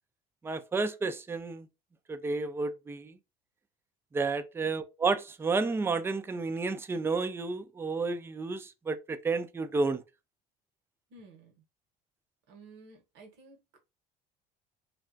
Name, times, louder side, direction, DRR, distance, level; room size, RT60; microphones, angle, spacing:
voice 1, 0.4-1.7 2.1-3.2 4.1-10.0, right 4 dB, 10° right, 0.3 m, -31 dB
voice 2, 11.1-11.5 12.5-13.6, right 3 dB, 65° right, 0.9 m, -53 dB
2.3 x 2.2 x 2.4 m
supercardioid pair, 85°, 20 cm